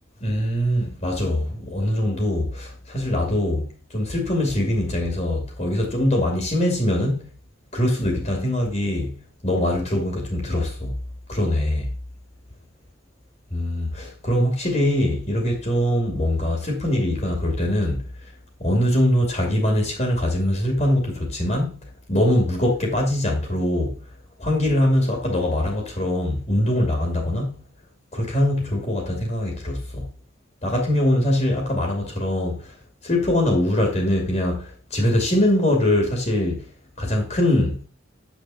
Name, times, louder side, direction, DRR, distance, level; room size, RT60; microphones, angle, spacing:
voice 1, 0.2-7.3 7.7-10.9 11.3-11.9 13.5-18.0 18.6-21.8 22.1-24.0 24.4-27.6 28.1-30.1 30.6-32.7 33.0-36.7 37.0-37.8, left 1 dB, 35° left, 2.5 m, -22 dB
8.6 x 6.3 x 4.2 m
head